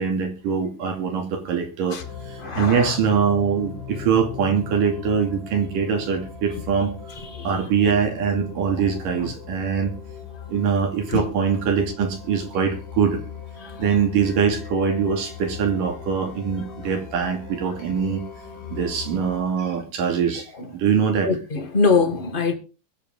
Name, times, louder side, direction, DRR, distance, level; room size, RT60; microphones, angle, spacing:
voice 1, 0.0-2.0 2.3-6.9 7.4-9.9 10.5-13.2 13.8-18.2 18.7-20.5 20.7-21.3, right 6 dB, 85° right, 4.3 m, -23 dB
sound 1, 2.0-19.4, left 7 dB, 80° left, 4.3 m, -38 dB
voice 2, 2.4-2.9 7.3-7.5 11.1-11.2 21.2-22.5, left 4 dB, 20° left, 1.4 m, -22 dB
22.5 x 8.3 x 3.8 m
omnidirectional pair, 3.7 m